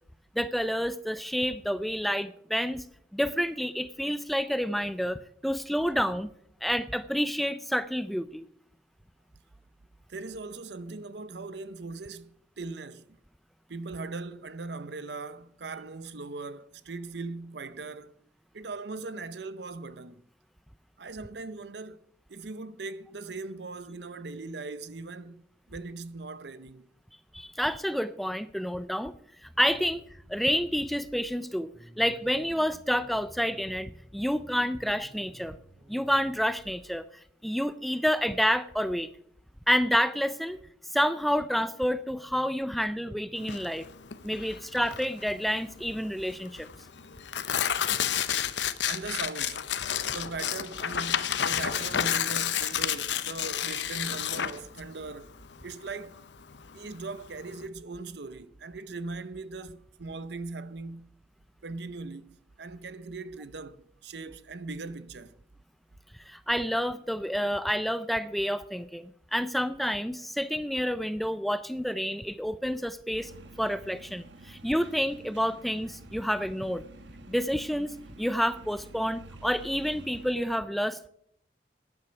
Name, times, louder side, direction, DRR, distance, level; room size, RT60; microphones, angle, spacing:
voice 1, 0.4-2.8 3.1-6.3 6.6-8.5 27.3-29.1 29.4-30.0 30.3-31.7 32.0-35.6 35.9-37.1 37.4-39.1 39.7-40.6 40.9-43.8 44.2-46.7 66.3-73.3 73.6-76.8 77.3-81.1, equal, ahead, 0.4 m, -29 dB
voice 2, 10.1-13.2 13.7-18.1 18.5-20.2 21.0-22.0 22.3-26.9 41.3-41.4 46.2-46.3 47.0-47.1 48.8-49.6 50.1-55.3 55.6-56.2 56.7-61.1 61.6-65.4, right 3 dB, 70° right, 0.7 m, -40 dB
sound 1, 29.4-36.8, right 1 dB, 40° right, 3.8 m, -53 dB
Tearing, 43.4-57.6, left 9 dB, 80° left, 0.7 m, -31 dB
sound 2, 73.2-80.4, right 2 dB, 90° right, 1.1 m, -49 dB
12.0 x 9.8 x 5.8 m
head